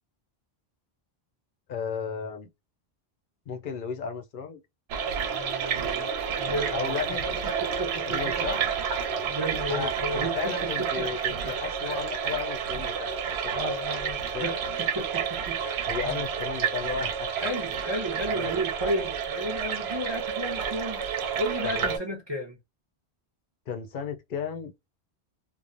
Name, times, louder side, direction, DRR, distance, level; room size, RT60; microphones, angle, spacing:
voice 1, 1.7-2.5 3.5-4.6 6.7-7.3 8.0-8.6 9.7-13.8 14.3-14.6 15.9-17.3 18.3-18.5 21.6-22.0 23.7-24.7, left 6 dB, 60° left, 0.7 m, -34 dB
sound 1, 4.9-22.0, right 7 dB, 80° right, 0.9 m, -30 dB
voice 2, 5.3-7.0 7.4-8.9 9.3-11.1 11.4-11.5 11.8-12.0 13.5-16.2 17.3-22.6, right 1 dB, 30° right, 0.7 m, -34 dB
3.1 x 2.0 x 2.5 m
omnidirectional pair, 1.1 m